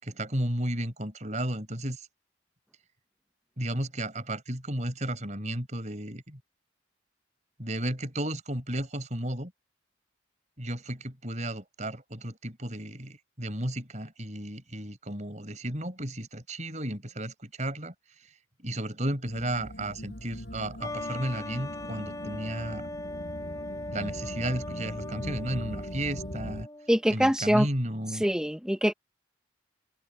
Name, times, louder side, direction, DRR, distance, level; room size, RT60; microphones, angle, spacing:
voice 1, 0.0-2.1 3.6-6.4 7.6-9.5 10.6-17.9 18.6-22.9 23.9-26.7 27.1-28.2, right 1 dB, 35° right, 5.2 m, -33 dB
sound 1, 19.3-26.6, equal, 60° left, 7.4 m, -41 dB
sound 2, 20.8-27.1, left 1 dB, 20° left, 3.6 m, -39 dB
voice 2, 26.9-27.7 28.2-28.9, equal, 5° right, 0.6 m, -24 dB
open air
head